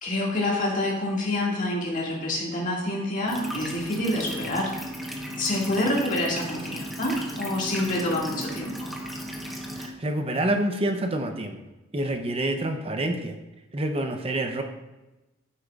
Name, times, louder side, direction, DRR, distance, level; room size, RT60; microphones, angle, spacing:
voice 1, 0.0-4.7 5.4-8.9, left 1 dB, 40° left, -3 dB, 2.1 m, -27 dB
sound 1, 3.3-9.9, equal, ahead, 0.9 m, -36 dB
voice 2, 9.7-11.6 11.9-13.4 13.7-14.6, right 1 dB, 30° right, 5 dB, 0.7 m, -27 dB
9.9 x 8.4 x 2.4 m, 1.0 s
head